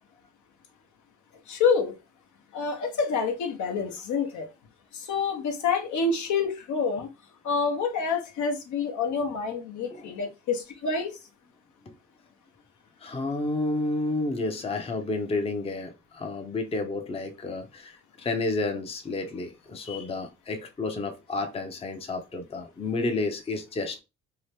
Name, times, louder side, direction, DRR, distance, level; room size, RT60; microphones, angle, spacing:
voice 1, 1.5-2.0 2.5-4.5 4.9-7.1 7.4-11.1, left 5 dB, 70° left, 0.8 m, -27 dB
voice 2, 13.0-24.0, left 2 dB, 20° left, 0.5 m, -31 dB
2.8 x 2.1 x 3.3 m
cardioid pair, 90°, 30 cm